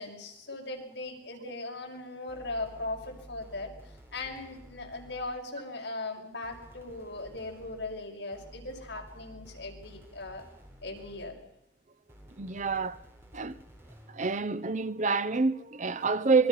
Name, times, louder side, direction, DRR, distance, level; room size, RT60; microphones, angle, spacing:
voice 1, 0.0-3.7 4.1-10.4 10.8-11.4, left 2 dB, 65° left, 6.1 m, -39 dB
sound 1, 2.3-5.5 6.4-11.6 12.1-14.3, equal, 15° right, 4.4 m, -52 dB
voice 2, 12.4-13.0 13.3-13.6 14.1-16.5, right 4 dB, 40° right, 0.8 m, -27 dB
26.5 x 22.0 x 5.8 m
head